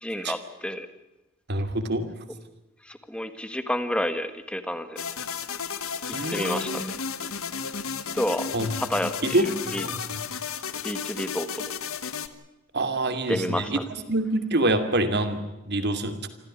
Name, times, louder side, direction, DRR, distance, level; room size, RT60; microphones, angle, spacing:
voice 1, 0.0-0.9 2.8-5.0 6.1-6.8 8.1-8.5 8.8-9.4 9.7-9.8 10.8-11.7 13.3-13.8, left 1 dB, 5° left, 10 dB, 1.7 m, -30 dB
voice 2, 1.5-2.1 6.1-6.8 8.5-8.8 9.2-10.2 12.7-13.8 14.1-16.3, right 1 dB, 55° right, 8 dB, 2.6 m, -26 dB
sound 1, 5.0-12.3, left 6 dB, 90° left, 1.5 m, -33 dB
26.0 x 15.0 x 9.8 m, 1.0 s
head